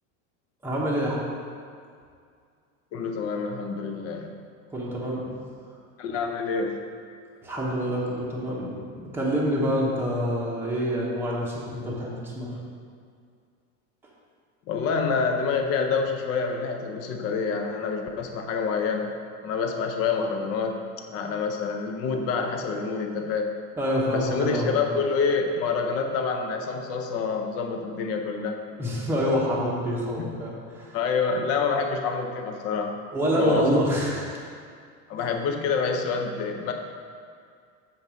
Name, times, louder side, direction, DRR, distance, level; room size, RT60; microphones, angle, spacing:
voice 1, 0.6-1.2 4.7-5.3 7.4-12.6 23.8-24.8 28.8-31.0 33.1-34.4, equal, 5° right, -5 dB, 0.9 m, -26 dB
voice 2, 2.9-4.3 6.0-6.8 14.7-19.1 19.4-20.8 21.1-23.5 24.1-28.6 30.2-30.3 30.9-32.9 33.4-33.8 35.1-36.7, left 5 dB, 35° left, 3 dB, 0.7 m, -27 dB
7.2 x 4.0 x 6.1 m, 2.2 s
cardioid pair, 170°, 39 cm